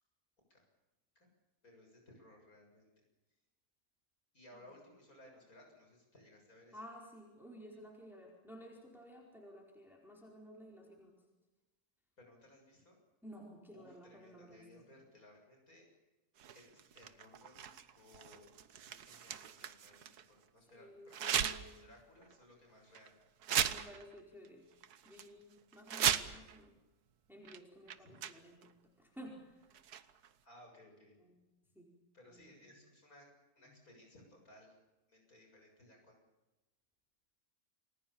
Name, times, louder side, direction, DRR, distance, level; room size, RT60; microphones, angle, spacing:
voice 1, 1.6-2.9 4.3-6.8 12.2-13.0 13.7-15.9 16.5-18.5 18.8-23.2 28.1-28.4 30.4-31.2 32.1-33.3 33.6-34.8 35.1-36.2, left 1 dB, 65° left, 2 dB, 7.5 m, -61 dB
voice 2, 6.7-11.1 13.2-14.9 20.6-21.9 23.7-24.6 25.0-26.7 27.3-28.7 29.0-29.7 31.2-31.4 31.7-31.9 32.2-32.7 33.6-33.8, equal, ahead, -1 dB, 4.7 m, -54 dB
sound 1, 16.4-20.2 21.1-21.8 22.2-22.3 22.9-23.1 23.4-24.2 24.4-24.5 24.8-25.3 25.7-26.6 27.4-27.6 27.9-28.7 29.7-30.3, right 9 dB, 80° right, 1.6 m, -37 dB
29.0 x 20.0 x 7.3 m, 1.1 s
omnidirectional pair, 1.6 m